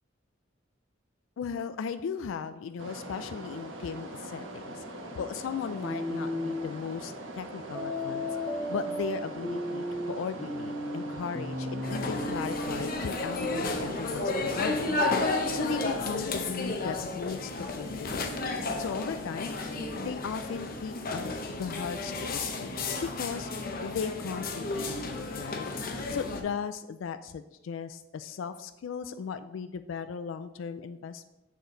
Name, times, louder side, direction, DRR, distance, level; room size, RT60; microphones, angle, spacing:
voice 1, 1.4-4.8 5.1-8.3 8.7-15.3 15.5-18.3 18.8-19.5 20.0-21.2 21.5-22.7 23.0-25.7 26.1-31.3, left 6 dB, 75° left, 11 dB, 0.3 m, -37 dB
sound 1, 2.8-16.0, right 1 dB, 75° right, 1.1 m, -42 dB
sound 2, 5.8-6.6 7.7-12.8, left 1 dB, ahead, 0.6 m, -34 dB
sound 3, 11.8-26.4, left 3 dB, 45° left, 0.8 m, -32 dB
6.9 x 6.5 x 3.9 m, 0.99 s
head